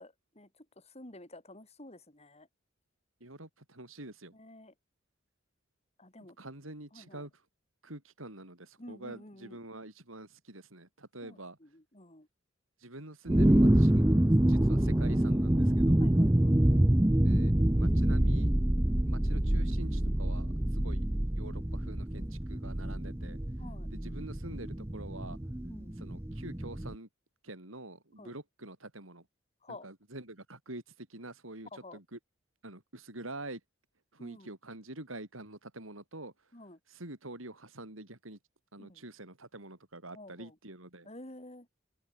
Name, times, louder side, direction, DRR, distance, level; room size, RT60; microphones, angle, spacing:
voice 1, 0.0-2.5 4.3-4.7 6.0-6.4 6.9-7.3 8.8-9.6 11.2-12.3 16.0-16.6 20.6-20.9 23.6-23.9 25.6-25.9 28.2-28.3 29.6-29.9 31.7-32.0 34.2-34.5 36.5-36.8 38.8-39.0 40.1-40.6 41.0-41.7, left 1 dB, 30° left, 5.6 m, -51 dB
voice 2, 3.2-4.3 6.4-7.3 7.8-11.6 12.8-14.2 14.4-16.0 17.2-18.5 19.1-21.1 21.4-23.4 23.9-25.4 26.0-27.1 27.4-29.3 29.7-32.2 32.6-33.6 34.1-36.3 36.9-38.4 38.7-41.1, right 2 dB, 85° right, 5.9 m, -46 dB
sound 1, 13.3-26.9, right 1 dB, 10° right, 0.6 m, -26 dB
open air
head